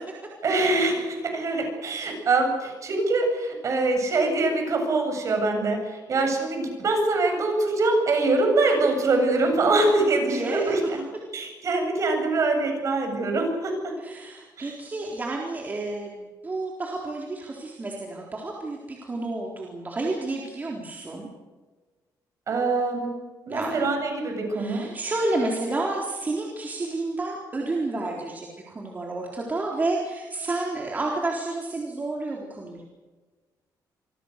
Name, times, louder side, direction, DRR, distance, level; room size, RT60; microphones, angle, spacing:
voice 1, 0.4-11.0 11.3-13.9 14.6-14.8 22.5-23.2 23.5-24.9, right 2 dB, 45° right, 4 dB, 7.9 m, -24 dB
voice 2, 10.3-10.7 14.0-21.3 23.5-23.9 24.5-32.8, right 2 dB, 25° right, -1 dB, 3.9 m, -30 dB
27.0 x 23.5 x 6.7 m, 1.3 s
cardioid pair, 145°, 7 cm